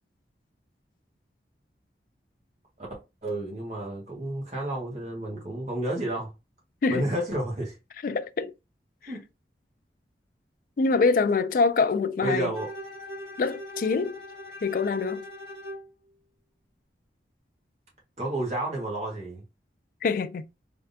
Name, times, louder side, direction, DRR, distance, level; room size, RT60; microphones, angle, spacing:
voice 1, 3.2-6.3 6.9-7.7 9.0-9.2 12.2-12.7 18.2-19.4, right 1 dB, 40° right, 1.5 m, -31 dB
voice 2, 8.0-8.5 10.8-12.5 13.4-14.2 14.6-15.3 20.0-20.5, left 4 dB, 50° left, 0.3 m, -25 dB
Bowed string instrument, 12.5-15.9, equal, 75° right, 1.8 m, -41 dB
3.5 x 3.3 x 2.7 m
head